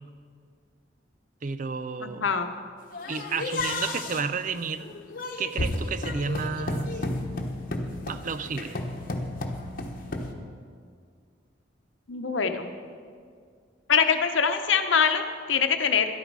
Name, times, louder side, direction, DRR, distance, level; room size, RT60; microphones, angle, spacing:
voice 1, 1.4-2.3 3.1-4.9 5.4-7.0 8.1-8.8, right 5 dB, 45° right, 12 dB, 0.5 m, -31 dB
voice 2, 2.0-2.5 12.1-12.7 13.9-16.1, left 6 dB, 85° left, 7 dB, 0.8 m, -24 dB
sound 1, 2.9-10.3, left 2 dB, 50° left, 1.1 m, -32 dB
13.0 x 11.5 x 4.7 m, 2.1 s
head